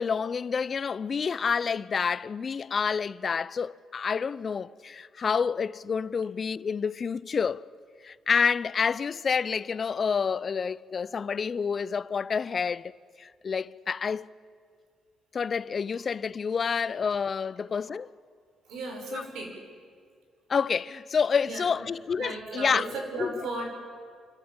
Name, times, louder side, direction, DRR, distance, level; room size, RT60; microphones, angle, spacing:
voice 1, 0.0-7.7 8.0-12.8 13.2-14.3 15.3-18.1 19.1-19.2 20.5-22.9 23.2-23.3, left 6 dB, 45° left, 0.5 m, -28 dB
voice 2, 18.7-19.5 21.4-21.7 22.2-23.7, right 2 dB, 80° right, 5.3 m, -36 dB
28.0 x 13.0 x 8.8 m
cardioid pair, 90°, 0 cm